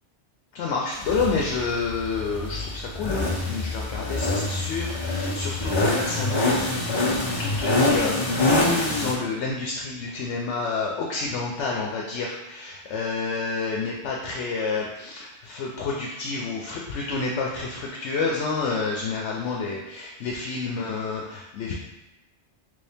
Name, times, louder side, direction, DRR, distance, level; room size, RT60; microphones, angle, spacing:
voice 1, 0.5-6.6 6.9-7.1 7.4-21.7, left 4 dB, 80° left, -2 dB, 0.9 m, -29 dB
sound 1, 1.0-9.1, left 2 dB, 40° left, 0.4 m, -25 dB
3.3 x 2.7 x 3.4 m, 1.0 s
omnidirectional pair, 1.2 m